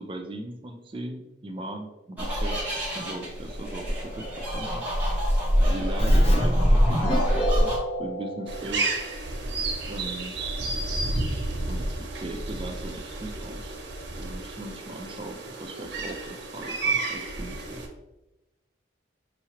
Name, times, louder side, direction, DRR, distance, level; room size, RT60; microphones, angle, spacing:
voice 1, 0.0-4.8 5.6-8.9 9.8-10.4 11.7-11.9 12.2-13.7 14.1-17.8, right 1 dB, 30° right, 3 dB, 0.4 m, -38 dB
sound 1, 2.2-7.8, equal, 10° right, 1.1 m, -24 dB
Keyboard (musical), 6.0-9.4, equal, 30° left, 0.7 m, -30 dB
sound 2, 8.5-17.9, right 2 dB, 70° right, 0.7 m, -31 dB
5.6 x 3.0 x 2.9 m, 0.99 s
head